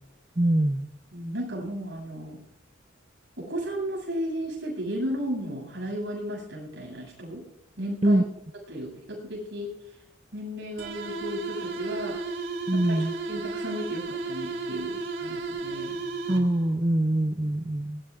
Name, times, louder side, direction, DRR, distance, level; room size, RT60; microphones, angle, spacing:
voice 1, 0.4-0.9 8.0-8.2 12.7-13.1 16.3-18.0, right 1 dB, 30° right, 6 dB, 0.7 m, -23 dB
voice 2, 1.1-2.4 3.4-7.4 7.8-8.2 8.7-9.7 10.3-12.2 12.7-16.0, equal, 60° right, 0 dB, 7.9 m, -34 dB
sound 1, 10.8-16.7, right 3 dB, 80° right, 3.0 m, -34 dB
23.5 x 20.0 x 2.5 m, 0.75 s
head